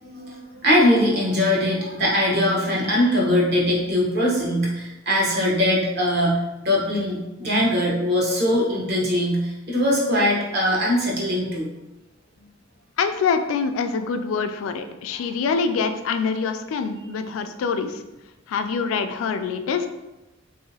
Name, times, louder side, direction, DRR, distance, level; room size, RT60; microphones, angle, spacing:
voice 1, 0.0-11.7 15.1-15.3, left 1 dB, 55° right, -4 dB, 0.9 m, -21 dB
voice 2, 13.0-18.0 18.5-19.9, left 5 dB, 85° left, 9 dB, 0.3 m, -25 dB
3.2 x 2.7 x 2.7 m, 1.0 s
head